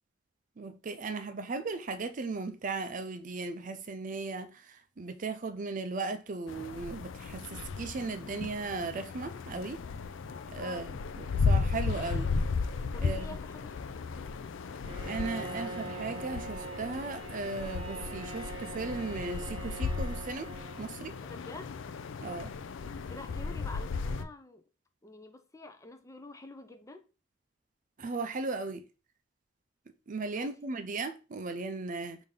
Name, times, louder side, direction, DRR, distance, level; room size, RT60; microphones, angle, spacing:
voice 1, 0.6-9.8 10.5-12.3 13.0-13.4 15.0-21.2 22.2-22.5 28.0-28.9 30.1-32.2, right 3 dB, 40° right, 0.5 m, -37 dB
sound 1, 6.5-24.2, left 4 dB, 80° left, 0.4 m, -35 dB
voice 2, 10.5-10.9 12.9-14.1 21.2-21.8 23.1-24.6 25.0-27.1 30.3-30.5, left 2 dB, 15° left, 0.6 m, -48 dB
Bowed string instrument, 14.9-21.1, right 3 dB, 25° right, 1.0 m, -43 dB
5.0 x 2.7 x 3.8 m
head